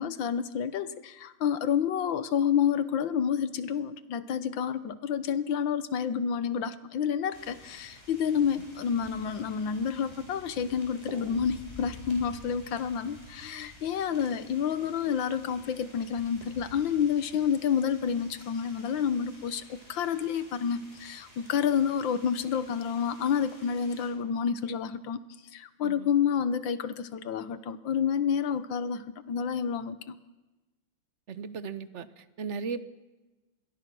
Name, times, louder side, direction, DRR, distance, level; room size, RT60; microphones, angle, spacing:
voice 1, 0.0-25.2 25.5-30.2, left 7 dB, 65° left, 13 dB, 1.7 m, -29 dB
sound 1, 7.3-24.1, left 1 dB, 15° left, 6.2 m, -51 dB
voice 2, 31.3-32.8, right 5 dB, 45° right, 12 dB, 1.0 m, -37 dB
27.0 x 22.0 x 6.2 m, 1.1 s
omnidirectional pair, 2.3 m